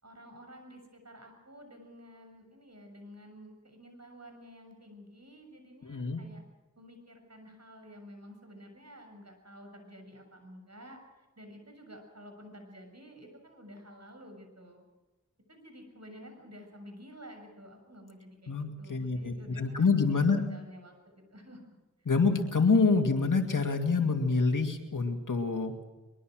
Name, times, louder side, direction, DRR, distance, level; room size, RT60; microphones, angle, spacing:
voice 1, 0.0-6.4 6.8-11.0 11.4-14.9 15.5-21.8, equal, 55° right, 5 dB, 6.9 m, -51 dB
voice 2, 5.8-6.2 18.5-20.4 22.1-25.9, left 4 dB, 85° left, 5 dB, 2.5 m, -27 dB
22.5 x 22.5 x 6.4 m, 1.1 s
wide cardioid pair, 45°, 31 cm